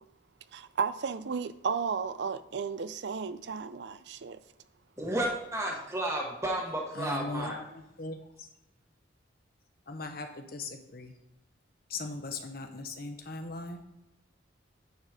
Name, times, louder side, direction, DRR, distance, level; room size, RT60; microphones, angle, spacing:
voice 1, 0.5-4.4, right 5 dB, 60° right, 0.4 m, -33 dB
voice 2, 5.0-7.6, right 1 dB, 15° right, 1.2 m, -32 dB
voice 3, 6.9-8.5 9.9-11.1 11.9-13.8, left 3 dB, 50° left, 0.9 m, -39 dB
9.4 x 4.2 x 5.0 m
head